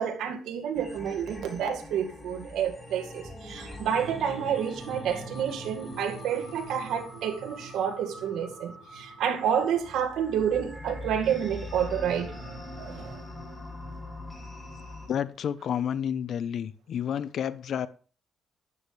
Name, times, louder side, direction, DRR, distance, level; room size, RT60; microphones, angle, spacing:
voice 1, 0.0-12.5 12.8-13.2, right 8 dB, 80° right, 2.0 m, -29 dB
sound 1, 0.7-15.1, left 1 dB, 5° left, 7.4 m, -42 dB
voice 2, 15.1-17.9, left 9 dB, 65° left, 0.8 m, -30 dB
12.5 x 9.8 x 3.4 m
cardioid pair, 90°, 0 cm